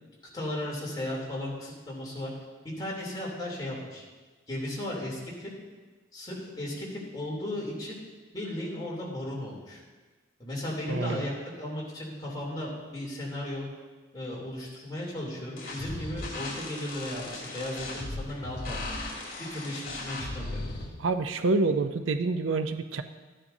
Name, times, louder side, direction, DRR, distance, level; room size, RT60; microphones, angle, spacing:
voice 1, 0.3-2.3 2.6-4.0 4.5-5.5 6.1-8.0 8.3-9.8 10.4-13.7 14.1-18.8 19.4-20.6, left 1 dB, 20° left, -5 dB, 2.9 m, -35 dB
voice 2, 10.9-11.3 21.0-23.0, right 3 dB, 85° right, 9 dB, 0.6 m, -27 dB
sound 1, 15.6-20.9, left 2 dB, 50° left, 2.5 m, -37 dB
14.0 x 10.0 x 2.7 m, 1.3 s
head